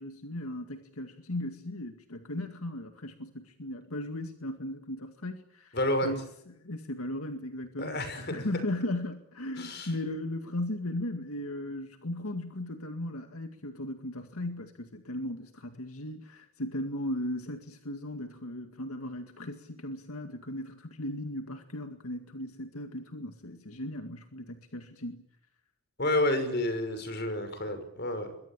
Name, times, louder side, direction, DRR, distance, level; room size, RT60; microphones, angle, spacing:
voice 1, 0.0-5.8 6.0-25.2, left 1 dB, 80° left, 2.1 m, -37 dB
voice 2, 5.7-6.1 7.8-8.5 9.6-9.9 26.0-28.3, left 1 dB, 45° left, 5.9 m, -30 dB
26.5 x 23.0 x 8.9 m
head